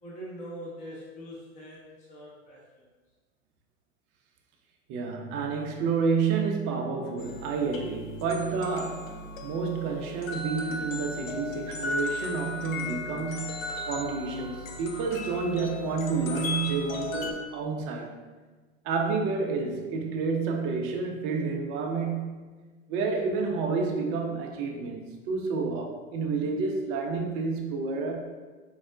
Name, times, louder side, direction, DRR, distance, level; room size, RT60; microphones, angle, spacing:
voice 1, 0.0-2.8, equal, 20° left, -4 dB, 0.6 m, -43 dB
voice 2, 4.9-18.1 18.8-22.4 22.9-28.3, right 4 dB, 30° right, 2 dB, 0.4 m, -30 dB
sound 1, 7.2-17.3, left 2 dB, 75° left, 0.6 m, -36 dB
4.4 x 2.0 x 2.4 m, 1.3 s
hypercardioid pair, 100°, 40 cm